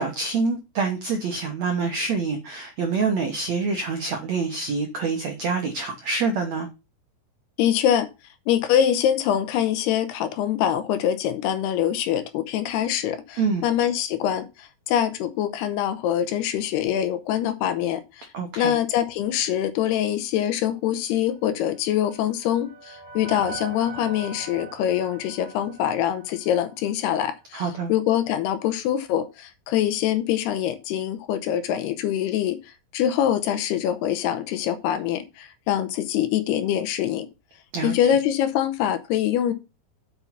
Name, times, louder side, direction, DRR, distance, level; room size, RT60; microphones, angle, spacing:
voice 1, 0.0-6.7 13.3-13.6 18.3-18.7 27.5-27.9 37.7-38.2, right 4 dB, 75° right, 1.6 m, -26 dB
voice 2, 7.6-8.1 8.5-18.3 18.6-27.6 27.9-37.3 37.8-39.5, left 10 dB, 75° left, 2.7 m, -24 dB
sound 1, 21.6-26.9, right 3 dB, 45° right, 2.2 m, -41 dB
8.3 x 5.7 x 5.7 m
omnidirectional pair, 5.0 m